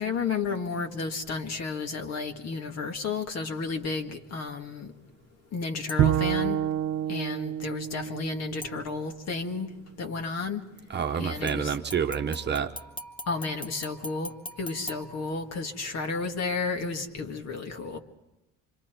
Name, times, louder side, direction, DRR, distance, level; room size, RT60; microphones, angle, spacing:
voice 1, 0.0-4.9 5.5-6.6 7.1-9.7 10.0-10.6 11.2-11.8 13.3-14.3 14.6-18.0, left 4 dB, 50° left, 5 dB, 1.9 m, -32 dB
sound 1, 5.9-6.3 8.6-9.3 11.5-15.9 16.3-16.4, left 1 dB, 15° left, 1.1 m, -43 dB
Bowed string instrument, 6.0-9.3, right 10 dB, 70° right, 0.8 m, -28 dB
voice 2, 10.9-12.7, right 7 dB, 35° right, 5 dB, 1.1 m, -28 dB
26.5 x 25.0 x 4.6 m, 0.95 s
cardioid pair, 120°, 33 cm